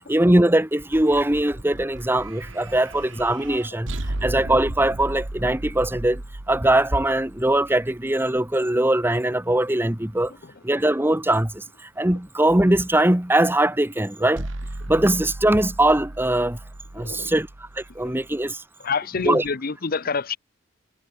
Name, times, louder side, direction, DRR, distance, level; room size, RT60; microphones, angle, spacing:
voice 1, 0.1-3.9 4.2-6.2 6.5-10.3 10.6-14.5 14.9-16.6 16.9-18.6 19.2-19.4, right 1 dB, 10° right, 1.3 m, -21 dB
sound 1, 0.8-8.1 14.3-18.4, right 1 dB, 80° right, 1.9 m, -36 dB
voice 2, 16.9-17.3 18.0-18.2 18.8-20.4, left 4 dB, 50° left, 0.9 m, -27 dB
head